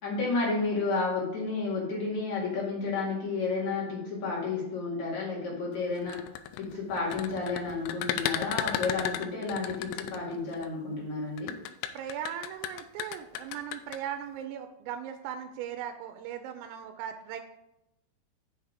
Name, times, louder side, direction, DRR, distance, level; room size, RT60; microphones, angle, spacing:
voice 1, 0.0-6.2 6.6-11.5, left 3 dB, 50° left, -5 dB, 2.6 m, -31 dB
sound 1, 6.0-10.7 11.4-14.0, left 11 dB, 85° left, 2.9 m, -34 dB
voice 2, 11.9-17.4, right 9 dB, 90° right, 5 dB, 3.2 m, -38 dB
7.0 x 5.9 x 4.9 m, 0.86 s
omnidirectional pair, 5.8 m